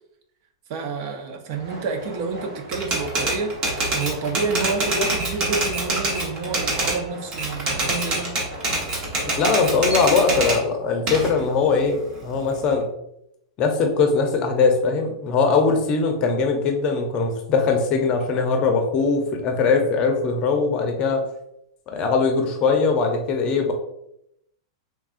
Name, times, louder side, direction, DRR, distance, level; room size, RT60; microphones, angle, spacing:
voice 1, 0.7-3.5 3.9-8.3, right 4 dB, 50° right, 5 dB, 0.5 m, -29 dB
sound 1, 1.5-9.8, right 1 dB, 75° right, 1.4 m, -40 dB
Typewriter, 2.7-7.0 7.3-10.6 11.1-12.7, right 2 dB, 35° right, 0.9 m, -25 dB
voice 2, 9.4-12.9 13.6-21.2 21.9-23.7, left 4 dB, 35° left, 4 dB, 0.6 m, -21 dB
3.3 x 2.3 x 2.4 m, 0.78 s
hypercardioid pair, 130°, 2 cm